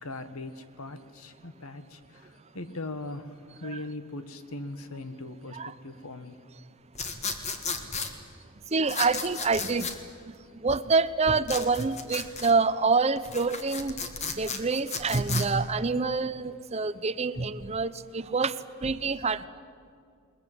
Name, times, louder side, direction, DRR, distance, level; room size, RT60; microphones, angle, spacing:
voice 1, 0.0-2.0 2.5-3.3 3.6-6.4, left 2 dB, 80° left, 11 dB, 1.5 m, -39 dB
sound 1, 6.9-8.1 8.9-10.0 11.4-12.5 13.2-15.5, left 5 dB, 30° left, 1.8 m, -34 dB
voice 2, 8.7-9.9 10.3-14.0 14.3-19.5, right 4 dB, 30° right, 14 dB, 0.6 m, -27 dB
21.0 x 21.0 x 9.4 m, 2.3 s
head